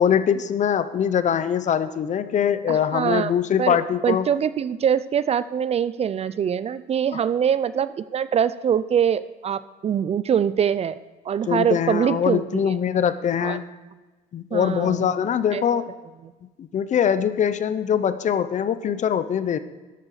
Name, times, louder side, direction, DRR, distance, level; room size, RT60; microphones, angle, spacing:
voice 1, 0.0-4.3 11.5-13.6 14.3-15.9 16.6-19.6, left 8 dB, 45° left, 13 dB, 0.7 m, -22 dB
voice 2, 2.7-3.3 3.6-12.7 13.4-13.6 14.5-15.1 15.5-15.6, right 8 dB, 40° right, 16 dB, 0.4 m, -24 dB
12.5 x 8.8 x 4.9 m, 1.2 s
cardioid pair, 110°, 17 cm